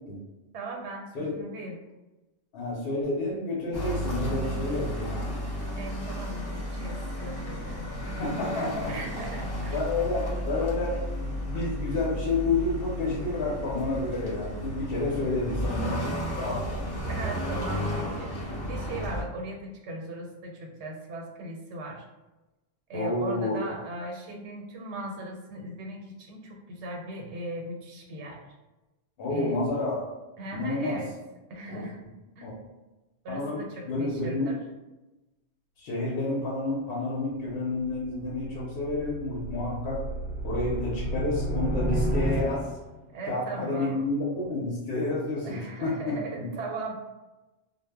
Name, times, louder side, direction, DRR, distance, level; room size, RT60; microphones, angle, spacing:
voice 1, 0.5-1.8 5.7-7.9 8.9-9.9 16.7-16.8 17.1-22.0 22.9-28.4 29.3-29.6 30.4-31.1 31.5-32.0 32.4-32.5 33.2-34.6 43.1-44.1 45.4-46.9, right 2 dB, 85° right, 0 dB, 0.9 m, -38 dB
voice 2, 2.5-5.3 8.0-8.9 9.7-16.1 16.4-16.9 22.9-23.6 29.2-30.0 30.5-31.0 31.7-31.8 32.4-32.5 33.3-33.6 33.9-34.5 35.8-40.0 40.4-42.7 43.3-46.5, left 2 dB, 65° left, -5 dB, 0.8 m, -30 dB
sound 1, 3.7-19.2, equal, 30° left, 0.4 m, -33 dB
sound 2, 37.8-43.0, right 1 dB, 60° right, 0.6 m, -31 dB
2.0 x 2.0 x 3.3 m, 1.1 s
omnidirectional pair, 1.2 m